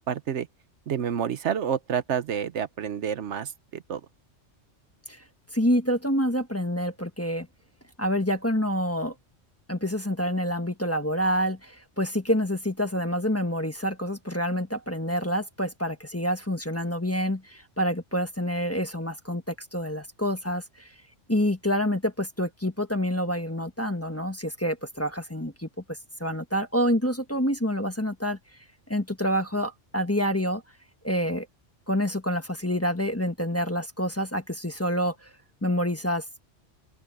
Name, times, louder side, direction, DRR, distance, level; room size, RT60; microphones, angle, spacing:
voice 1, 0.1-0.5 0.9-4.0, right 8 dB, 70° right, 1.1 m, -29 dB
voice 2, 5.5-7.5 8.0-9.1 9.7-20.9 21.3-28.4 28.9-30.6 31.0-31.5 31.9-35.3 35.6-36.2, equal, 10° left, 1.3 m, -27 dB
open air
omnidirectional pair, 1.3 m